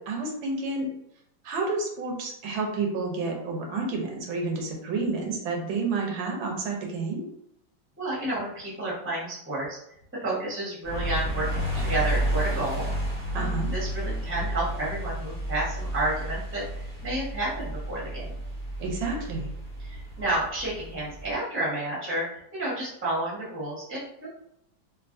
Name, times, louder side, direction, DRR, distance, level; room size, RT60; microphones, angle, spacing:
voice 1, 0.1-0.9 1.4-7.2 13.3-13.7 18.8-19.5, right 3 dB, 80° right, 1 dB, 1.5 m, -30 dB
voice 2, 8.0-9.8 10.1-12.9 13.3-16.6 17.0-18.3 19.8-24.3, right 1 dB, 10° right, -7 dB, 0.9 m, -31 dB
sound 1, 10.8-21.3, right 1 dB, 40° right, 0.5 m, -31 dB
3.5 x 2.5 x 2.5 m, 0.77 s
omnidirectional pair, 2.1 m